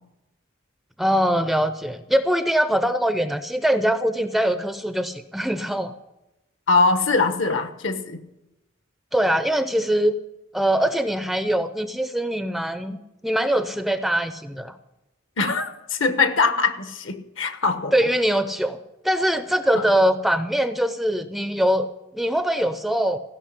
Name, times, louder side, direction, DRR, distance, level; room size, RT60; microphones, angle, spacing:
voice 1, 1.0-5.9 9.1-10.1 10.5-14.7 17.9-18.8 19.0-21.9 22.1-23.2, right 1 dB, ahead, 11 dB, 0.5 m, -22 dB
voice 2, 6.7-8.2 15.4-18.1 19.7-19.8, left 4 dB, 65° left, 10 dB, 1.1 m, -22 dB
15.5 x 5.9 x 10.0 m, 0.94 s
head